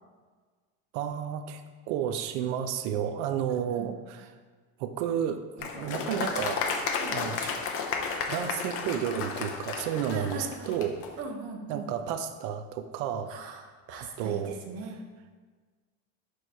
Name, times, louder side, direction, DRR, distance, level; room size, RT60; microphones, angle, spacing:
voice 1, 0.9-1.6 1.9-4.3 4.8-7.5 8.3-11.0 11.7-13.3 14.2-14.6, right 9 dB, 85° right, 8 dB, 0.5 m, -32 dB
voice 2, 3.5-3.9 7.0-7.2 10.1-10.8 11.2-11.9 13.3-15.0, right 4 dB, 45° right, 4 dB, 0.8 m, -40 dB
Applause, 5.6-11.1, left 5 dB, 40° left, 0.6 m, -33 dB
6.4 x 3.1 x 5.4 m, 1.5 s
cardioid pair, 180°, 35 cm